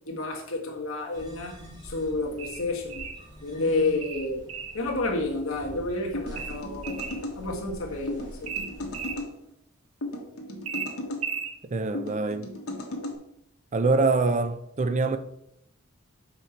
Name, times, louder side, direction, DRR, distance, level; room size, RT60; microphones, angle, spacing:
voice 1, 0.0-3.1 3.4-4.5 4.7-7.1 7.3-8.5, left 2 dB, 70° left, 1.5 m, -30 dB
sound 1, 1.1-9.2, equal, 20° right, 3.0 m, -45 dB
sound 2, 2.4-3.2 4.0-4.8 6.4-7.2 8.5-9.2 10.7-11.6, right 6 dB, 90° right, 0.8 m, -35 dB
sound 3, 6.1-7.4 8.1-9.3 10.0-11.2 11.9-13.2, left 1 dB, 90° left, 1.4 m, -35 dB
voice 2, 11.6-12.5 13.7-15.2, right 3 dB, 35° right, 0.5 m, -24 dB
5.8 x 5.6 x 4.4 m
head